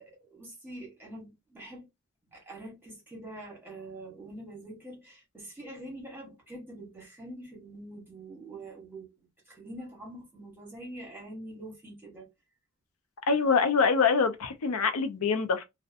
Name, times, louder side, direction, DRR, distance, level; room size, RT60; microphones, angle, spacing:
voice 1, 0.0-1.9 2.3-9.1 9.5-12.3, right 1 dB, 10° right, 1.0 m, -45 dB
voice 2, 13.3-15.6, left 5 dB, 85° left, 0.5 m, -25 dB
2.6 x 2.1 x 2.5 m
head